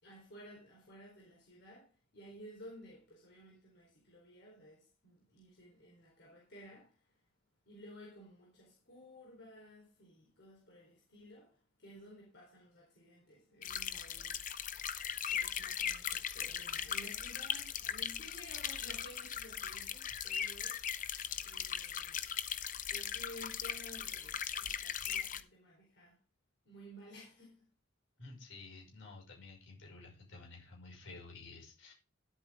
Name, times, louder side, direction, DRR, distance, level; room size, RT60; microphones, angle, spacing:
voice 1, 0.0-7.2 7.7-14.4 15.3-20.9 21.4-22.2 22.9-26.2 26.6-27.7, equal, 55° left, 4.2 m, -55 dB
sound 1, 13.6-25.4, left 8 dB, 40° left, 0.7 m, -39 dB
voice 2, 28.2-31.9, left 3 dB, 75° left, 5.7 m, -52 dB
11.5 x 8.5 x 3.7 m
head